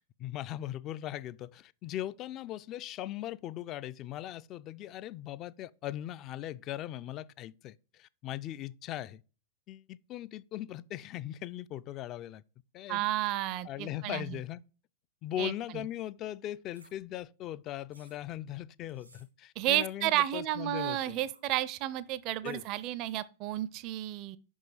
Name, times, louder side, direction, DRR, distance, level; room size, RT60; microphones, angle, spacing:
voice 1, 0.0-9.2 9.7-12.4 12.7-13.0 13.6-14.6 15.2-21.2 22.4-22.6, left 13 dB, 35° left, 0.3 m, -39 dB
voice 2, 12.9-14.4 15.4-15.8 19.6-24.4, right 14 dB, 40° right, 0.5 m, -32 dB
sound 1, 16.7-16.9 17.9-18.2 18.9-19.3 20.1-20.3 20.7-21.4 22.4-22.7, right 2 dB, 90° right, 1.6 m, -59 dB
5.8 x 5.5 x 4.7 m
figure-of-eight pair, 95°, 0 cm